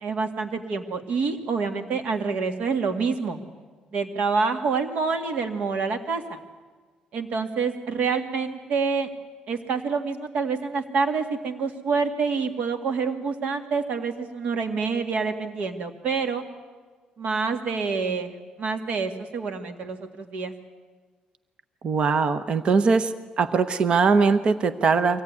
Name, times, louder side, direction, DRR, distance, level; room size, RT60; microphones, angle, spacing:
voice 1, 0.0-3.4 3.9-6.4 7.1-9.1 9.5-16.4 17.2-20.5, right 5 dB, 60° right, 6 dB, 2.2 m, -27 dB
voice 2, 21.8-25.2, right 5 dB, 40° right, 11 dB, 0.9 m, -21 dB
24.0 x 17.0 x 9.6 m, 1.4 s
cardioid pair, 155°, 3 cm